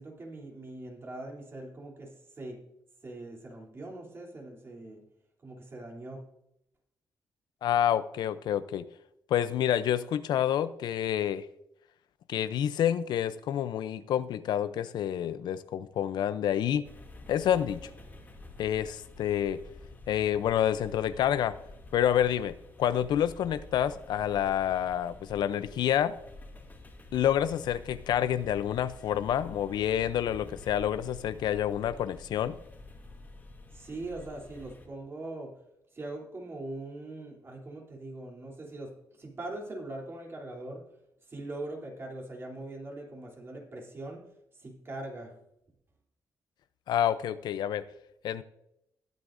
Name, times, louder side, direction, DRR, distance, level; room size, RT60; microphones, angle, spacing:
voice 1, 0.0-2.6 3.0-5.0 5.4-6.2 33.7-35.5 35.9-40.8 41.3-44.2 44.6-45.4, right 2 dB, 35° right, 3.1 m, -41 dB
voice 2, 7.6-8.9 9.3-11.5 12.3-16.9 17.3-17.9 18.6-19.6 20.1-21.6 21.9-26.2 27.1-32.6 46.9-47.9 48.2-48.4, left 10 dB, 85° left, 0.5 m, -28 dB
sound 1, 16.8-34.9, left 2 dB, 25° left, 2.4 m, -49 dB
19.0 x 8.2 x 2.6 m
cardioid pair, 115°, 7 cm